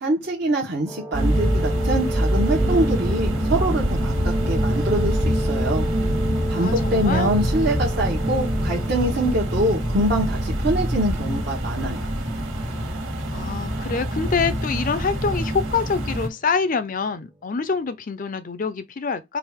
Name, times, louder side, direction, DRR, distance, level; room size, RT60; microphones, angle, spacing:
voice 1, 0.0-5.9 6.5-12.1, right 1 dB, 50° right, 1.0 m, -24 dB
sound 1, 0.9-16.5 17.2-17.3, right 1 dB, 5° right, 0.6 m, -35 dB
sound 2, 1.1-16.3, equal, 85° right, 1.5 m, -24 dB
voice 2, 6.5-7.3 13.3-19.4, left 5 dB, 40° left, 0.5 m, -26 dB
4.6 x 2.4 x 3.5 m
head